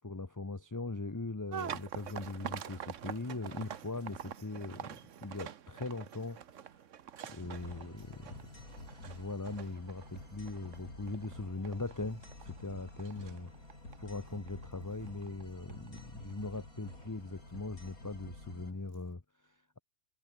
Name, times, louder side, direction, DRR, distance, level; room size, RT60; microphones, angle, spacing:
voice 1, 0.0-6.4 7.3-8.3 9.0-12.2 12.6-13.5 14.0-19.8, left 3 dB, 15° left, 0.9 m, -40 dB
sound 1, 1.5-16.6 16.9-17.4 18.2-18.3 18.7-18.9, right 9 dB, 60° right, 1.3 m, -46 dB
sound 2, 7.4-18.7, left 2 dB, 75° left, 7.0 m, -50 dB
omnidirectional pair, 1.5 m